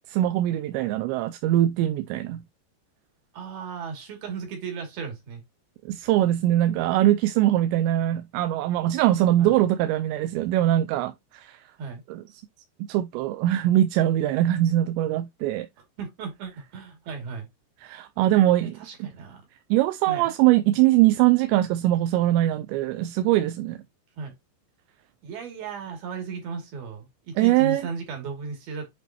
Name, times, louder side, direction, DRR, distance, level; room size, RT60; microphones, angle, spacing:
voice 1, 0.1-2.4 5.9-11.6 12.1-12.2 12.9-15.7 17.8-19.1 19.7-23.8 27.4-27.9, right 14 dB, 85° right, 2.7 m, -22 dB
voice 2, 3.3-5.4 9.4-9.5 11.8-12.0 16.0-17.5 18.8-19.4 20.1-20.3 24.2-24.3 25.2-28.9, right 5 dB, 55° right, 4.3 m, -35 dB
8.4 x 5.3 x 2.9 m
omnidirectional pair, 5.4 m